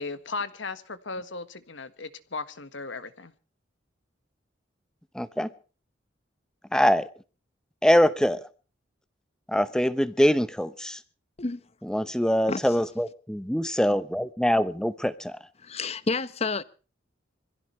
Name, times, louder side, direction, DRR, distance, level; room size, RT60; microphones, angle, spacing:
voice 1, 0.0-3.3, left 3 dB, 80° left, 1.6 m, -36 dB
voice 2, 5.1-5.5 6.7-7.1 7.8-8.4 9.5-11.0 11.9-15.4, equal, 5° left, 0.9 m, -23 dB
voice 3, 15.6-16.6, left 3 dB, 35° left, 0.9 m, -29 dB
25.5 x 16.0 x 3.2 m
head